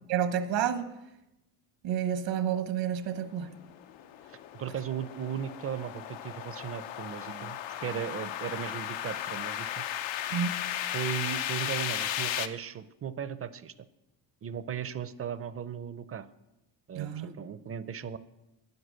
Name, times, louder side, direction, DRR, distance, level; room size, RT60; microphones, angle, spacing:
voice 1, 0.1-0.9 1.8-3.5 10.3-10.6 16.9-17.3, right 9 dB, 75° right, 10 dB, 1.2 m, -29 dB
sound 1, 3.4-12.5, left 11 dB, 90° left, 0.8 m, -35 dB
voice 2, 4.3-9.8 10.9-13.7 14.4-16.3 16.9-18.2, right 8 dB, 30° right, 15 dB, 0.5 m, -37 dB
9.4 x 8.1 x 7.5 m, 0.94 s
cardioid pair, 110°, 44 cm